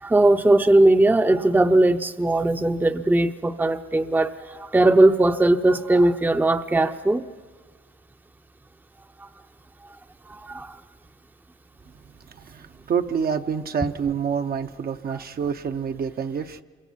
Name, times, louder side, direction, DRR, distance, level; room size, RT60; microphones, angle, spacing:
voice 1, 0.0-7.3 10.3-10.8, right 2 dB, 10° right, 9 dB, 0.7 m, -19 dB
voice 2, 12.3-16.6, right 6 dB, 50° right, 7 dB, 0.8 m, -27 dB
27.0 x 24.0 x 5.8 m, 1.5 s
cardioid pair, 90°, 20 cm